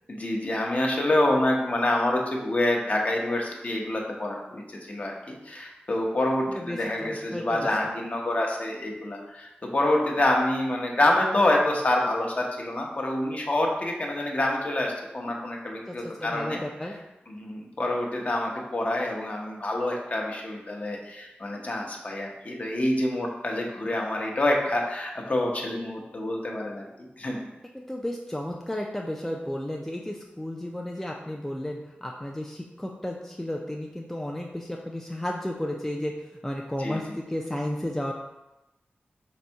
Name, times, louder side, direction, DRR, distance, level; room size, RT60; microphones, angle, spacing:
voice 1, 0.1-16.6 17.3-27.4 36.8-37.0, left 1 dB, 40° left, 0 dB, 0.7 m, -27 dB
voice 2, 6.6-7.9 15.9-17.0 27.7-38.1, left 1 dB, 10° left, 0 dB, 0.3 m, -33 dB
4.0 x 2.6 x 4.4 m, 0.96 s
wide cardioid pair, 95°, 4 cm